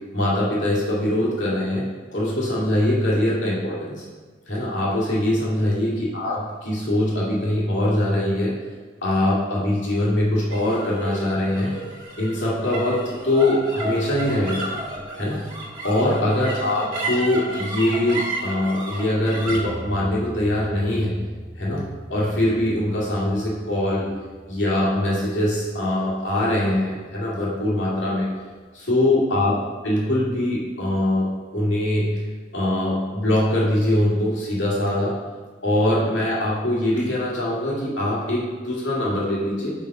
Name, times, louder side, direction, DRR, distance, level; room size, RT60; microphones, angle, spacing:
voice 1, 0.1-4.0 4.5-8.5 9.0-11.7 12.2-14.7 15.2-15.5 15.8-21.2 21.6-21.8 22.1-24.1 24.5-28.3 28.7-29.6 29.8-31.3 31.5-32.3 32.5-35.1 35.6-39.7, left 1 dB, 85° left, -6 dB, 2.3 m, -22 dB
sound 1, 10.5-27.1, right 1 dB, 25° right, 1.6 m, -34 dB
5.5 x 5.3 x 6.0 m, 1.4 s
head